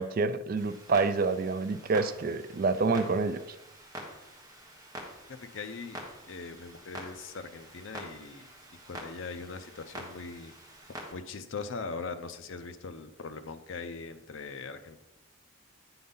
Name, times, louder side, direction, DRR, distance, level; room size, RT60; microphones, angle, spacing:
voice 1, 0.0-3.4, right 4 dB, 45° right, 12 dB, 0.4 m, -28 dB
Clock, 0.6-11.1, right 1 dB, 15° right, 1.2 m, -46 dB
voice 2, 5.4-6.0 6.3-8.5 8.8-10.5 11.1-15.0, left 4 dB, 65° left, 9 dB, 0.6 m, -41 dB
8.7 x 3.9 x 5.5 m, 0.96 s
head